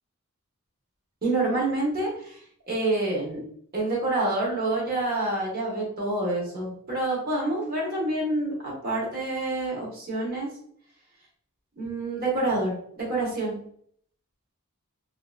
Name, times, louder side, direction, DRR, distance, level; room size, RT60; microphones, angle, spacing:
voice 1, 1.2-2.4 2.7-3.4 3.7-10.5 11.8-13.6, right 2 dB, 45° right, -4 dB, 1.2 m, -27 dB
2.9 x 2.8 x 2.3 m, 0.62 s
head